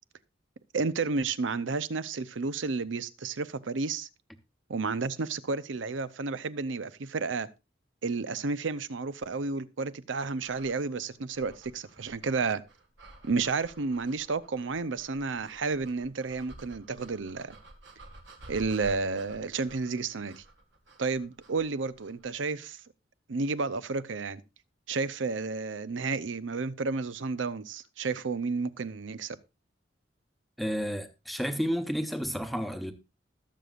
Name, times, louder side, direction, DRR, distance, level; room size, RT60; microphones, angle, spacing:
voice 1, 0.7-4.1 4.7-7.5 8.0-12.6 13.2-17.6 18.5-20.4 21.0-22.8 23.3-24.4 24.9-29.4, right 4 dB, 85° right, 0.7 m, -31 dB
sound 1, 10.4-22.3, right 1 dB, 70° right, 1.9 m, -52 dB
voice 2, 30.6-32.9, equal, ahead, 0.9 m, -31 dB
20.5 x 6.8 x 2.5 m
head